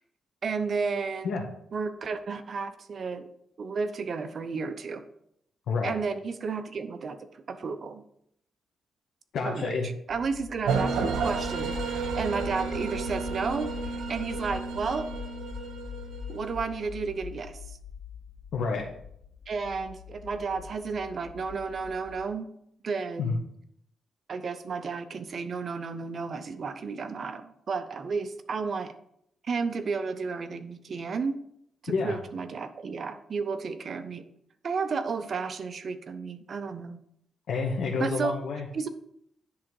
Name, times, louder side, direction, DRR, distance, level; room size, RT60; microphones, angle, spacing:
voice 1, 0.4-1.3 1.7-3.3 3.6-5.0 5.8-8.0 9.4-9.7 10.1-13.7 14.1-15.1 16.3-17.6 19.5-22.5 22.8-23.4 24.3-28.9 29.4-31.4 31.8-34.2 34.6-37.0 38.0-38.3 38.7-38.9, right 4 dB, 45° right, 9 dB, 0.6 m, -32 dB
voice 2, 9.3-9.9 18.5-18.9 23.2-23.4 31.9-32.2 37.5-38.9, left 4 dB, 75° left, 0 dB, 1.1 m, -29 dB
sound 1, 10.1-22.3, left 7 dB, 60° left, 0.6 m, -43 dB
sound 2, 10.7-16.7, right 5 dB, 85° right, 1.1 m, -32 dB
10.0 x 3.7 x 4.7 m, 0.73 s
cardioid pair, 120°, 0 cm